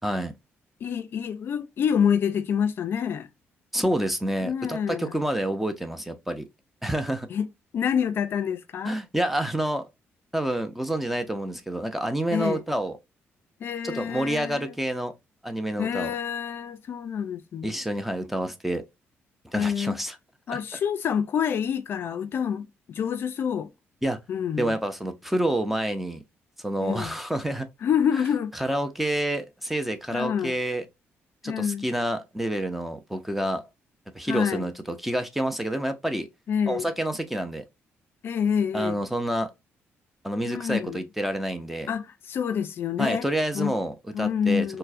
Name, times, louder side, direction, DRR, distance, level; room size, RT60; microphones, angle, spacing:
voice 1, 0.0-0.3 3.7-6.5 6.8-7.3 8.8-9.8 10.3-12.9 13.8-15.1 15.4-16.1 17.6-18.8 19.4-20.1 20.5-20.6 24.0-24.2 24.6-26.2 26.6-27.7 28.6-30.9 31.4-33.6 34.1-34.7 35.0-36.3 36.7-37.6 38.7-39.5 40.2-41.9 43.0-44.8, right 1 dB, 5° right, 0.5 m, -28 dB
voice 2, 0.8-3.3 4.4-5.2 7.3-7.5 7.7-9.0 12.3-12.6 13.6-14.7 15.8-17.8 19.5-20.0 20.5-23.7 24.3-24.7 26.8-27.1 27.8-28.5 30.1-30.6 31.4-31.9 34.2-34.7 36.5-36.9 38.2-39.0 40.4-41.0 41.9-43.3 43.5-43.7 44.1-44.8, left 7 dB, 55° left, 0.3 m, -27 dB
4.3 x 2.1 x 2.5 m
cardioid pair, 130°, 5 cm